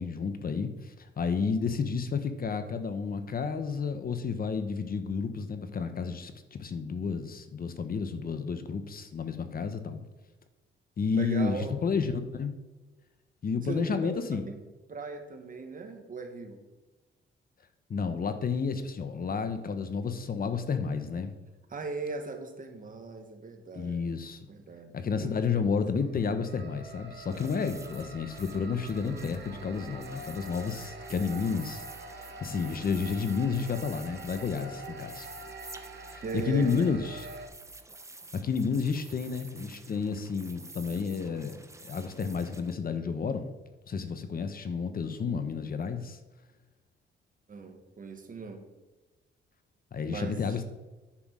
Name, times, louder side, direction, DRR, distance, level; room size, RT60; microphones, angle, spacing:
voice 1, 0.0-10.0 11.0-12.6 13.4-14.4 17.9-21.3 23.7-24.4 24.9-31.8 32.1-35.3 36.1-37.2 38.3-41.6 41.8-43.5 43.9-46.2 49.9-50.6, left 5 dB, 45° left, 9 dB, 1.0 m, -31 dB
voice 2, 11.1-11.8 13.6-14.6 14.9-16.6 21.7-24.1 24.5-25.3 36.2-36.9 47.5-48.6 50.1-50.6, right 4 dB, 40° right, 5 dB, 1.7 m, -38 dB
sound 1, 25.9-37.5, right 2 dB, 60° right, 1.7 m, -45 dB
sound 2, 27.3-42.7, right 2 dB, 15° right, 0.9 m, -50 dB
10.0 x 6.2 x 6.2 m, 1.2 s
cardioid pair, 105°, 21 cm